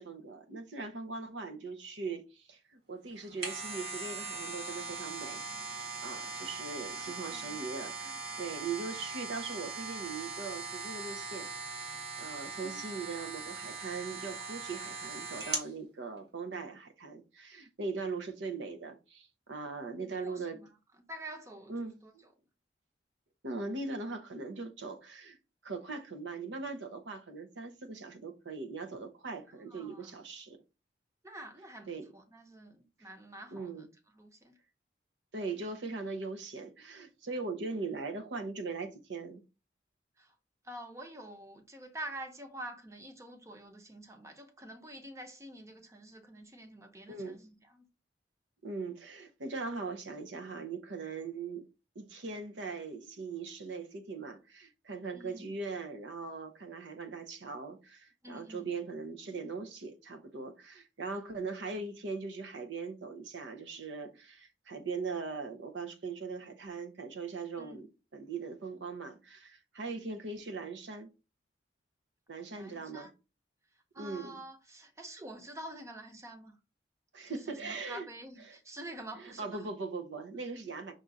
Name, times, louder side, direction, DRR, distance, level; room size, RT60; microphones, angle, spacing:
voice 1, 0.0-5.4 6.0-11.5 12.2-20.6 21.7-22.2 23.4-25.4 25.6-30.6 31.9-32.1 33.0-33.1 33.5-33.9 35.3-39.4 47.1-47.4 48.6-51.7 51.9-71.1 72.3-73.1 74.0-74.4 77.1-78.1 78.4-78.6 79.2-80.9, right 4 dB, 85° right, 0.8 m, -40 dB
sound 1, 3.1-15.7 16.2-16.3, right 4 dB, 60° right, 1.6 m, -40 dB
voice 2, 6.9-7.6 12.6-12.9 20.0-20.7 21.1-22.1 29.7-30.1 31.2-31.9 32.1-33.9 34.1-34.6 40.2-40.3 40.6-47.9 55.1-55.5 58.2-58.7 67.6-67.9 69.9-70.0 72.6-73.1 73.9-76.5 77.3-79.6, right 1 dB, 15° right, 0.7 m, -47 dB
5.4 x 2.4 x 3.9 m
head